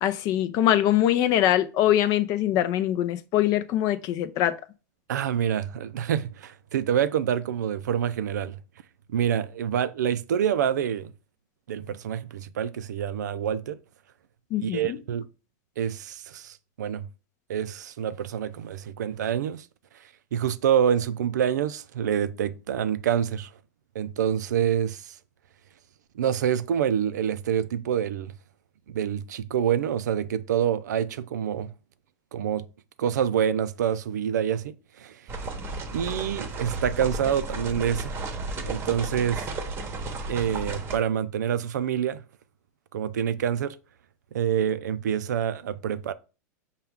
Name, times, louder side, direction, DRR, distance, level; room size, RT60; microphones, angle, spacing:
voice 1, 0.0-4.6 14.5-15.0, left 12 dB, 45° left, 0.5 m, -23 dB
voice 2, 5.1-8.6 9.1-11.1 11.7-13.8 14.6-15.3 15.8-17.1 17.5-19.7 20.3-23.5 24.0-25.2 26.1-28.3 28.9-31.7 32.3-32.7 33.0-35.2 35.9-38.2 38.6-39.5 40.3-42.2 42.9-43.8 44.3-46.1, right 9 dB, 85° right, 0.4 m, -27 dB
sound 1, 35.3-41.0, right 2 dB, 25° right, 0.9 m, -33 dB
5.7 x 2.3 x 3.5 m
hypercardioid pair, 120°, 9 cm